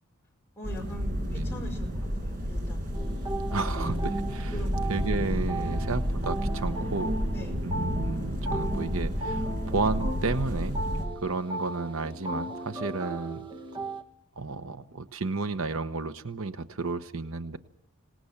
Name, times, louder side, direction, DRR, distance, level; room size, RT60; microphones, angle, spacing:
voice 1, 0.6-3.0 4.5-5.8 7.3-7.6 12.9-13.2, equal, 10° left, -1 dB, 5.2 m, -43 dB
sound 1, 0.6-11.0, equal, 40° right, 6.3 m, -31 dB
sound 2, 2.9-14.0, right 1 dB, 20° right, 1.7 m, -36 dB
voice 2, 3.5-4.5 4.9-7.2 7.6-10.8 11.2-13.5 14.4-17.6, right 3 dB, 65° right, 10 dB, 1.1 m, -32 dB
26.5 x 19.0 x 7.3 m, 0.75 s
head